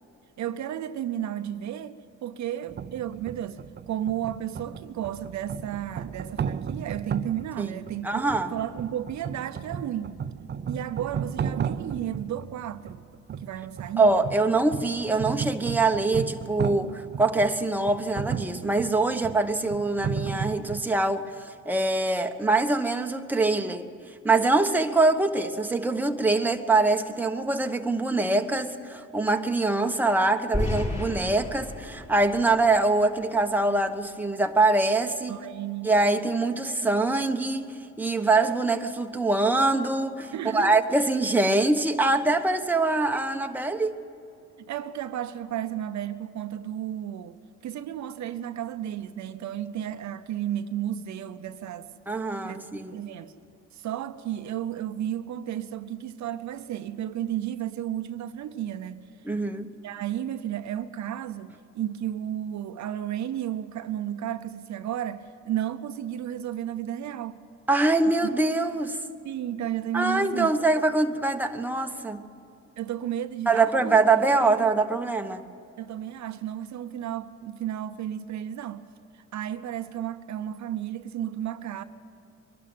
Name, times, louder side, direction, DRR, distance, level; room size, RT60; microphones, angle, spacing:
voice 1, 0.4-3.6 3.9-8.1 8.5-10.2 10.7-13.0 13.3-14.2 35.3-35.9 40.3-40.7 44.6-51.9 52.4-53.3 53.7-59.0 59.8-67.4 69.2-70.5 72.8-74.0 74.3-74.7 75.8-78.9 79.1-81.8, right 11 dB, 70° right, 0.8 m, -33 dB
sound 1, 2.7-20.9, right 7 dB, 35° right, 0.6 m, -35 dB
voice 2, 8.0-8.5 14.0-23.9 24.2-35.3 35.8-44.0 52.1-53.0 59.2-59.7 67.7-69.0 69.9-72.2 73.5-75.4, right 3 dB, 5° right, 1.1 m, -24 dB
sound 2, 30.5-33.5, left 1 dB, 25° left, 6.3 m, -32 dB
22.5 x 12.5 x 9.4 m
cardioid pair, 90°, 30 cm